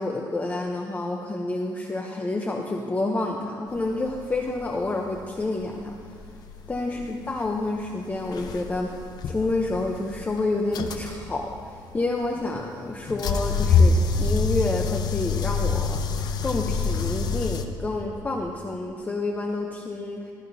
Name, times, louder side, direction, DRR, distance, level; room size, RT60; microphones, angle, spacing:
voice 1, 0.0-6.0 6.7-8.9 9.2-16.0 16.4-20.3, left 2 dB, 20° left, 2 dB, 0.7 m, -29 dB
sound 1, 3.7-17.6, left 4 dB, 55° left, 0.7 m, -26 dB
15.0 x 12.5 x 2.7 m, 2.7 s
cardioid pair, 125°, 8 cm